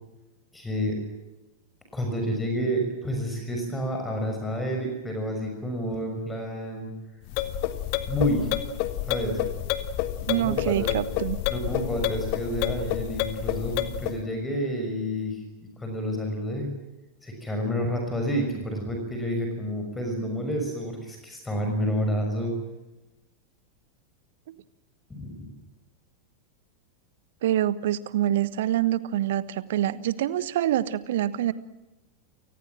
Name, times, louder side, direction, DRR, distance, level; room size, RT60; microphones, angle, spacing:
voice 1, 0.5-0.9 1.9-6.9 8.1-8.5 9.1-9.4 10.3-10.9 11.5-15.4 15.8-16.7 17.2-22.5 25.1-25.4, equal, 10° left, 3 dB, 6.3 m, -29 dB
sound 1, 7.3-14.2, left 12 dB, 45° left, 1.8 m, -29 dB
voice 2, 10.3-11.4 27.4-31.5, right 12 dB, 55° right, 17 dB, 1.2 m, -26 dB
29.5 x 19.5 x 7.5 m, 1.0 s
figure-of-eight pair, 90°, 0 cm